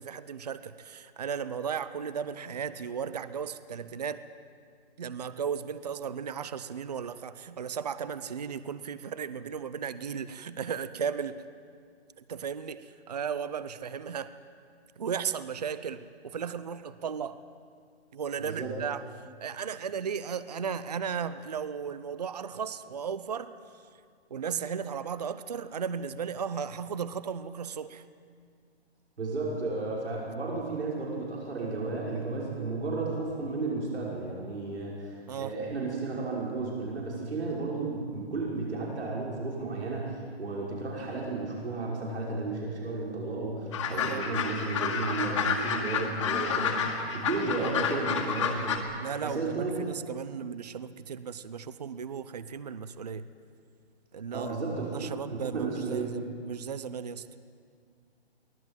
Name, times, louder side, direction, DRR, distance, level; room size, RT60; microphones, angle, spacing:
voice 1, 0.0-4.2 5.0-11.4 12.2-14.3 15.0-17.4 18.1-19.0 19.4-23.5 24.3-28.0 35.3-35.5 43.9-44.3 49.0-53.2 54.1-54.5 54.9-57.2, right 7 dB, 40° right, 14 dB, 0.6 m, -35 dB
voice 2, 18.4-18.7 29.2-48.8 49.2-49.8 54.3-56.2, right 3 dB, 85° right, -4 dB, 5.7 m, -33 dB
sound 1, 43.7-48.8, left 6 dB, 30° left, 1.9 m, -30 dB
23.5 x 17.5 x 7.6 m, 2.2 s
hypercardioid pair, 170°, 33 cm